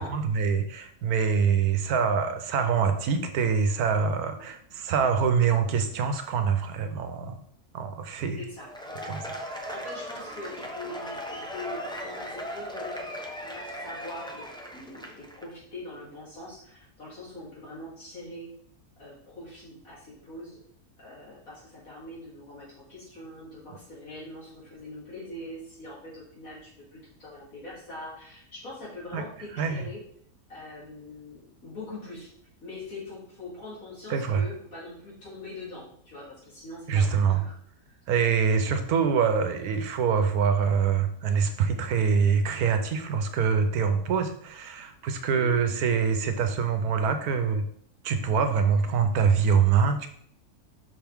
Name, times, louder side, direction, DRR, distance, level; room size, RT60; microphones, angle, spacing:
voice 1, 0.0-7.4 7.7-8.4 9.0-9.8 29.1-29.2 29.5-29.9 34.1-34.5 36.9-37.4 38.1-47.6 48.0-50.1, right 6 dB, 80° right, 7 dB, 1.3 m, -25 dB
voice 2, 8.4-8.7 9.0-9.2 9.7-14.4 14.7-18.5 19.0-20.6 21.0-30.0 30.5-32.3 32.6-37.6 37.9-38.0 38.5-38.6 39.0-39.1 44.7-44.9 45.4-45.5, left 2 dB, 65° left, -7 dB, 3.3 m, -43 dB
Cheering / Applause / Crowd, 8.6-15.4, equal, 5° left, 0.3 m, -38 dB
6.0 x 5.9 x 3.5 m, 0.63 s
omnidirectional pair, 1.6 m